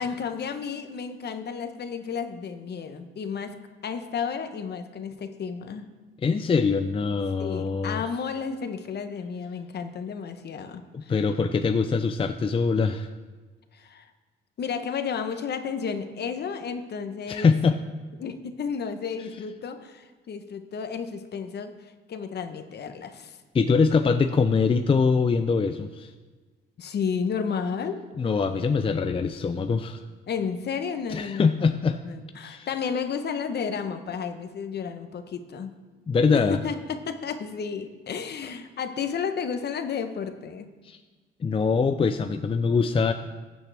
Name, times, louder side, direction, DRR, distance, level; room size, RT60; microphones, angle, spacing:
voice 1, 0.0-3.6 3.8-5.9 7.4-11.1 13.7-14.1 14.6-17.5 18.2-23.4 26.8-28.0 30.3-35.7 36.3-40.7, left 6 dB, 55° left, 8 dB, 1.0 m, -32 dB
voice 2, 6.2-8.0 10.9-13.1 17.3-17.8 23.5-26.1 28.2-30.0 31.1-32.0 32.4-32.7 36.1-36.6 40.9-41.0 41.4-43.1, left 5 dB, 25° left, 8 dB, 0.5 m, -23 dB
15.5 x 8.6 x 3.4 m, 1.3 s
cardioid pair, 90°, 20 cm